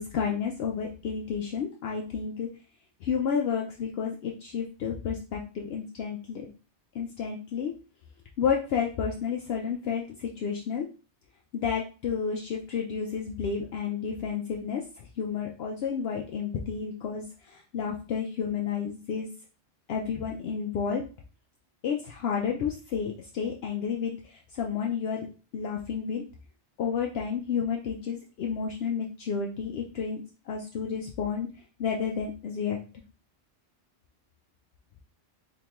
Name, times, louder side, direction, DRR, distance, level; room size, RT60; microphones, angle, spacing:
voice 1, 0.0-2.5 3.0-6.5 6.9-7.7 8.4-10.9 11.5-19.3 19.9-21.0 21.8-25.3 25.5-26.2 26.8-30.2 30.5-31.5 31.8-32.8, left 6 dB, 70° left, 0 dB, 0.7 m, -31 dB
3.4 x 2.9 x 2.9 m, 0.35 s
omnidirectional pair, 1.2 m